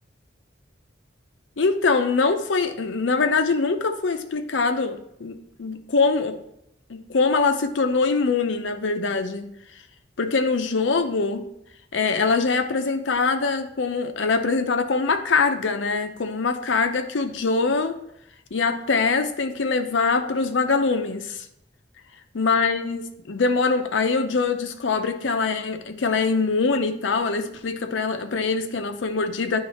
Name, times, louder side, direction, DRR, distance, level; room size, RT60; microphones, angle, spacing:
voice 1, 1.6-6.4 6.9-9.5 10.2-11.5 11.9-18.0 18.5-21.4 22.3-29.6, left 4 dB, 75° left, 8 dB, 0.6 m, -23 dB
9.4 x 3.2 x 4.2 m, 0.78 s
head